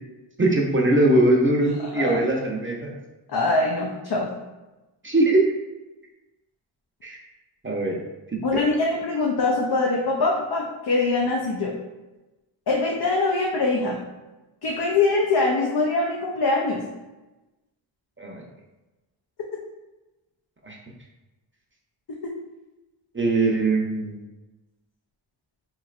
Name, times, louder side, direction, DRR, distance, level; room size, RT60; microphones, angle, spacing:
voice 1, 0.4-2.9 5.0-5.5 7.0-7.2 7.6-8.0 18.2-18.4 20.6-20.8 23.1-24.2, right 2 dB, 25° right, -1 dB, 0.6 m, -21 dB
voice 2, 3.3-4.3 8.4-11.7 12.7-14.0 14.6-16.8, left 3 dB, 55° left, -2 dB, 0.6 m, -23 dB
4.0 x 3.1 x 2.4 m, 1.1 s
wide cardioid pair, 65°, 47 cm